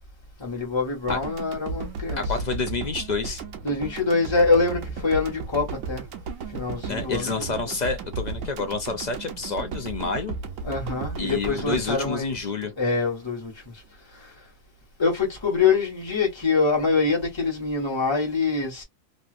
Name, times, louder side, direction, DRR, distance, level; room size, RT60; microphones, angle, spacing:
voice 1, 0.4-2.3 3.6-6.0 6.5-7.5 10.6-13.7 15.0-18.8, left 4 dB, 20° left, 1.4 m, -25 dB
sound 1, 1.1-13.3, right 4 dB, 80° right, 1.2 m, -35 dB
voice 2, 2.1-3.4 6.9-10.4 11.2-12.7, left 4 dB, 50° left, 0.5 m, -29 dB
3.2 x 2.7 x 2.4 m
omnidirectional pair, 1.4 m